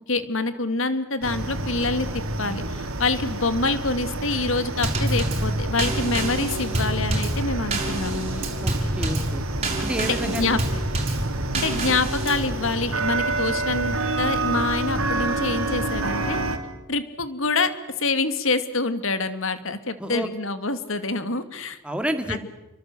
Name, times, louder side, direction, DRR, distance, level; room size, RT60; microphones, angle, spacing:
voice 1, 0.1-2.1 2.4-8.5 10.0-10.6 11.5-16.4 16.9-17.7 18.0-21.8 22.3-22.5, left 3 dB, 60° left, 11 dB, 2.3 m, -26 dB
sound 1, 1.2-16.6, right 2 dB, 75° right, 3.4 m, -29 dB
Drum kit / Snare drum / Bass drum, 4.8-12.5, right 1 dB, 30° right, 5.9 m, -27 dB
voice 2, 8.6-9.5 9.8-10.6 20.0-20.3 21.8-22.4, right 1 dB, 5° right, 6 dB, 2.3 m, -29 dB
30.0 x 24.0 x 7.8 m, 0.94 s
head